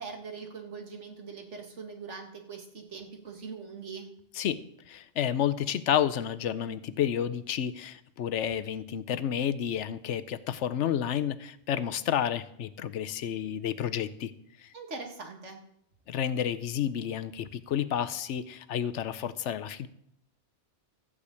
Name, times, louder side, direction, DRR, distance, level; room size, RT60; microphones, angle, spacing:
voice 1, 0.0-4.1 14.7-15.6, right 4 dB, 80° right, 3 dB, 2.1 m, -42 dB
voice 2, 4.9-14.3 14.6-14.7 16.1-19.9, left 9 dB, 80° left, 13 dB, 1.0 m, -30 dB
14.5 x 5.0 x 8.3 m, 0.73 s
omnidirectional pair, 1.2 m